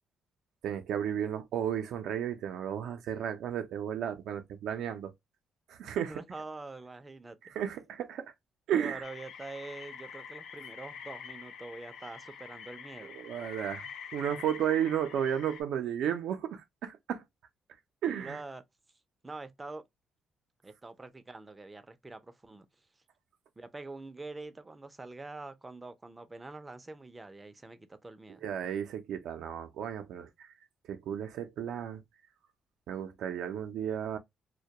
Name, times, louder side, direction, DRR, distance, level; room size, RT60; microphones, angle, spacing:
voice 1, 0.6-5.1 5.7-6.2 7.4-8.3 8.7-9.0 13.1-17.2 18.0-18.4 28.4-30.5 30.9-32.0 32.9-34.2, right 9 dB, 80° right, 0.5 m, -33 dB
voice 2, 6.1-7.6 8.8-13.1 18.2-18.6 19.2-19.8 20.6-22.7 23.6-28.4, right 3 dB, 20° right, 0.5 m, -45 dB
sound 1, 9.0-15.6, left 7 dB, 80° left, 0.5 m, -46 dB
2.2 x 2.1 x 2.7 m
cardioid pair, 90°, 0 cm